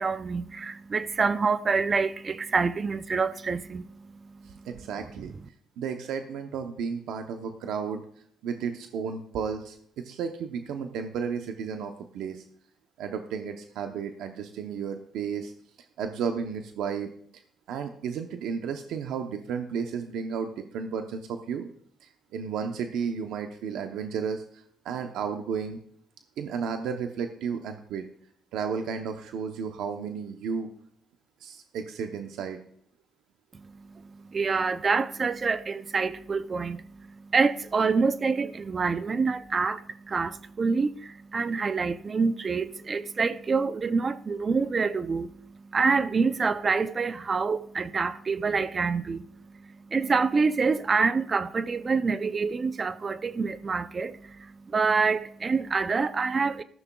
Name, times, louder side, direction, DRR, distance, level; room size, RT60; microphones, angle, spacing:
voice 1, 0.0-4.7 5.2-5.3 33.5-56.6, right 4 dB, 35° right, 0.5 m, -27 dB
voice 2, 4.4-5.3 5.8-8.0 8.4-12.4 13.0-15.5 16.0-17.1 17.7-21.7 22.0-25.8 26.4-28.1 28.5-30.7 31.4-32.6, right 6 dB, 85° right, 0.8 m, -33 dB
14.0 x 12.5 x 2.3 m
cardioid pair, 90°, 0 cm